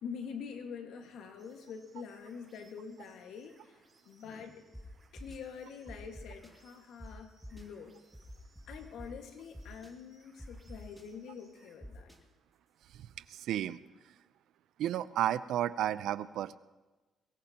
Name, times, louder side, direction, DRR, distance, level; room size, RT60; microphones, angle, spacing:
voice 1, 0.0-4.6 5.1-8.0 8.7-12.1, left 6 dB, 80° left, 5 dB, 1.7 m, -46 dB
sound 1, 1.4-11.8, right 3 dB, 30° right, 7.0 m, -68 dB
sound 2, 4.7-4.8 5.2-5.4 5.9-6.5 7.0-7.1 7.4-7.6 8.1-9.1 9.5-9.9 10.4-11.0 11.8-12.2, equal, 5° right, 2.1 m, -47 dB
voice 2, 12.9-13.8 14.8-16.6, right 11 dB, 80° right, 15 dB, 0.5 m, -33 dB
22.5 x 18.5 x 2.9 m, 1.2 s
cardioid pair, 90°, 0 cm